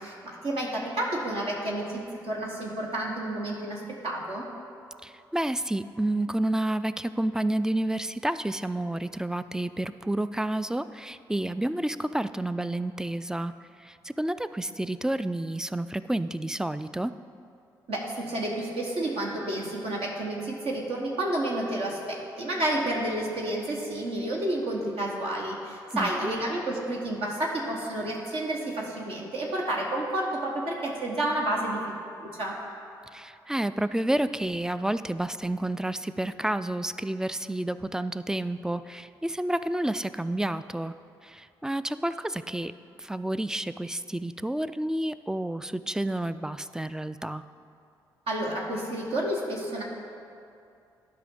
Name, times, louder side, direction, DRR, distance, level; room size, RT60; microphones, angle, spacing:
voice 1, 0.0-4.5 17.9-32.6 48.3-49.8, right 1 dB, 60° right, -3 dB, 1.3 m, -30 dB
voice 2, 5.0-13.5 13.8-17.2 25.9-26.3 33.1-40.9 41.2-42.7 43.0-47.4, right 1 dB, 5° right, 13 dB, 0.3 m, -30 dB
12.0 x 5.3 x 3.8 m, 2.5 s
hypercardioid pair, 40°, 11 cm